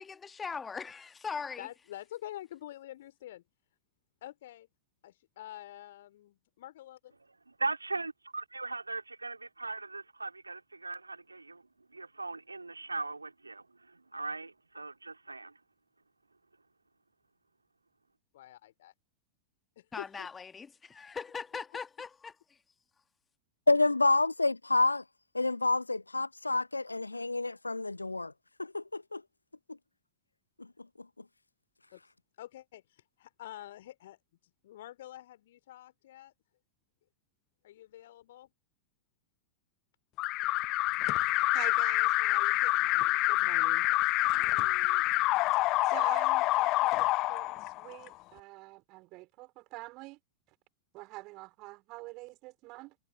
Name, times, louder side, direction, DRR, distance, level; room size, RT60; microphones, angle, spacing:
voice 1, 0.0-1.7 19.9-22.3, left 5 dB, 15° left, 1.5 m, -40 dB
voice 2, 1.6-3.4 4.2-4.7 5.0-7.1 18.3-18.9 19.7-20.3 31.9-36.3 37.6-38.5 44.3-45.0, left 13 dB, 55° left, 3.3 m, -48 dB
voice 3, 7.5-11.6 11.9-15.5, right 3 dB, 80° right, 3.2 m, -39 dB
voice 4, 23.7-25.0 25.3-28.3 28.6-29.2, left 2 dB, 80° left, 0.5 m, -28 dB
Alarm, 40.2-48.1, left 19 dB, 40° left, 0.6 m, -27 dB
voice 5, 41.5-43.9 45.8-50.2 50.9-53.0, right 22 dB, 40° right, 4.1 m, -46 dB
figure-of-eight pair, 90°, 0 cm